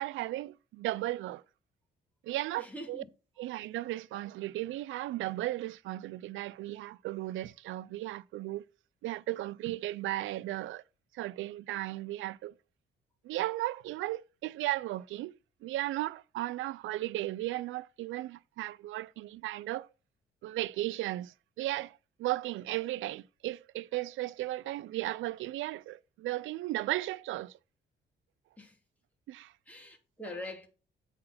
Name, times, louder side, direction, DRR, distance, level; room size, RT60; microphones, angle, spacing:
voice 1, 0.0-1.4 2.2-3.0 3.4-8.6 9.0-10.8 11.1-12.5 13.2-19.9 20.4-27.6 29.3-29.5, right 16 dB, 80° right, 0.4 m, -35 dB
voice 2, 2.6-3.1 28.6-28.7 29.7-30.7, left 1 dB, 5° left, 2.8 m, -43 dB
8.5 x 4.2 x 5.8 m
cardioid pair, 90°, 20 cm